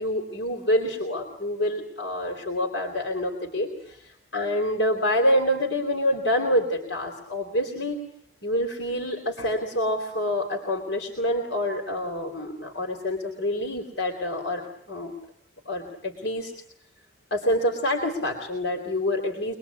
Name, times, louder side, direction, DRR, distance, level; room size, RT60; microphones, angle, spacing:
voice 1, 0.0-8.0 8.4-15.1 15.7-16.5 17.3-19.5, left 1 dB, 70° left, 2 dB, 3.6 m, -27 dB
25.0 x 21.5 x 8.5 m, 0.68 s
head